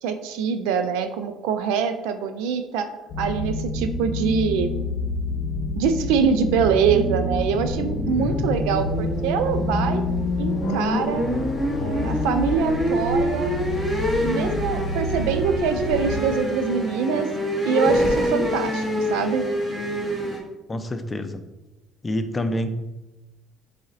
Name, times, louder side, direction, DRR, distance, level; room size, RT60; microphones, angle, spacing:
voice 1, 0.0-2.9 3.2-4.7 5.8-10.0 10.4-11.2 11.8-13.5 14.2-17.3 17.6-19.4, right 6 dB, 85° right, 9 dB, 0.3 m, -24 dB
sound 1, 3.1-16.2, left 1 dB, 70° left, 0.7 m, -28 dB
sound 2, 6.9-20.4, equal, 15° right, 1.1 m, -26 dB
voice 2, 20.7-21.4 22.0-22.7, left 1 dB, 25° left, 8 dB, 0.4 m, -27 dB
4.1 x 3.9 x 2.5 m, 1.0 s
supercardioid pair, 80°, 0 cm